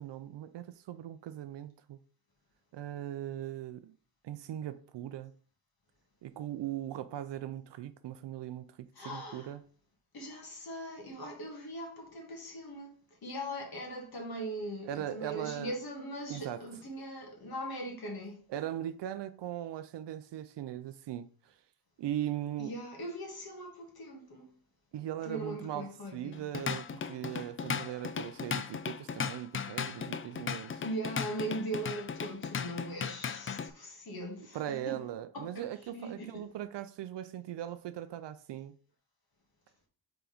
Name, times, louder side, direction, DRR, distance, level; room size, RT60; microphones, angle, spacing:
voice 1, 0.0-2.0 2.7-4.0 4.2-5.3 6.2-9.6 14.8-15.7 16.3-16.6 18.5-21.6 22.0-22.7 24.9-30.8 34.5-38.7, right 12 dB, 80° right, 0.5 m, -39 dB
voice 2, 8.9-9.5 10.1-18.4 22.6-24.5 25.2-26.4 30.8-35.0 35.3-35.7 35.9-36.5, right 1 dB, 60° left, 1.8 m, -40 dB
Drum kit / Drum, 26.3-33.7, left 6 dB, 30° left, 0.4 m, -36 dB
4.9 x 3.8 x 5.0 m
wide cardioid pair, 135°, 42 cm